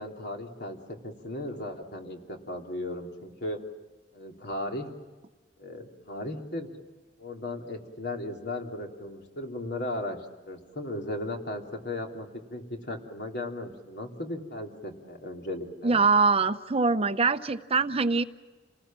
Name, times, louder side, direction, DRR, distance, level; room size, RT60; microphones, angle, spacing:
voice 1, 0.0-3.6 4.1-4.9 5.6-6.7 7.2-16.0, left 1 dB, 60° left, 2 dB, 3.1 m, -36 dB
voice 2, 15.8-18.2, right 4 dB, 30° right, 11 dB, 0.7 m, -23 dB
28.5 x 19.5 x 7.5 m, 1.3 s
head